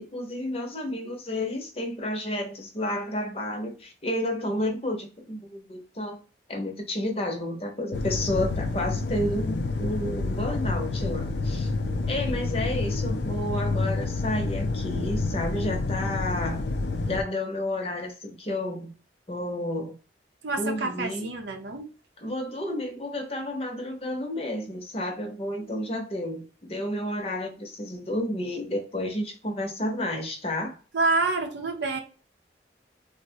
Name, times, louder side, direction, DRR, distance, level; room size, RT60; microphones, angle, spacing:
voice 1, 0.0-6.2 6.5-11.7 12.1-16.7 17.1-18.9 19.3-19.9 20.6-21.3 22.2-30.8, left 1 dB, 35° left, 0.7 m, -31 dB
sound 1, 7.9-17.2, left 3 dB, 70° left, 0.4 m, -28 dB
voice 2, 20.4-21.9 30.9-32.0, right 3 dB, 75° right, 0.6 m, -27 dB
4.0 x 2.1 x 2.7 m
head